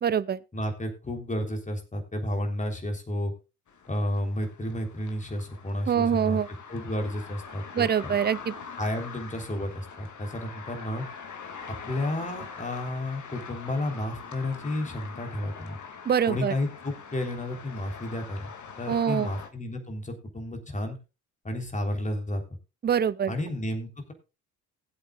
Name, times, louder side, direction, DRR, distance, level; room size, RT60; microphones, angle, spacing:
voice 1, 0.0-0.4 5.9-6.5 7.7-8.6 16.1-16.5 18.9-19.3 22.8-23.3, right 8 dB, 20° right, 0.7 m, -24 dB
voice 2, 0.5-3.3 3.9-6.4 6.7-8.2 8.8-11.1 11.7-15.8 16.3-18.5 18.8-21.0 21.4-22.4 23.3-24.1, left 1 dB, 15° left, 3.5 m, -32 dB
sound 1, 3.7-19.5, left 6 dB, 40° left, 2.2 m, -43 dB
20.0 x 8.0 x 2.4 m
figure-of-eight pair, 55°, 45 cm